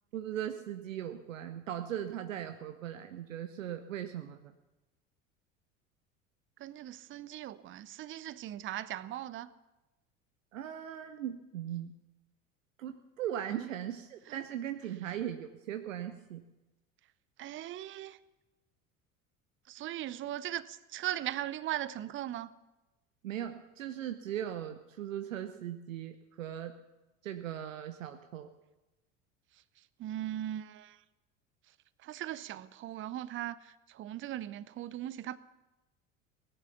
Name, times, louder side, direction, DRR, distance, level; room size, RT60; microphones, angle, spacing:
voice 1, 0.1-4.5 10.5-11.9 12.8-16.4 23.2-26.7 27.2-28.5, right 10 dB, 70° right, 0.9 m, -39 dB
voice 2, 6.6-9.5 13.5-13.7 14.3-14.4 17.4-18.2 19.7-22.5 30.0-31.0 32.0-35.4, right 13 dB, 30° right, 0.7 m, -39 dB
18.0 x 11.0 x 7.0 m
figure-of-eight pair, 70°, 41 cm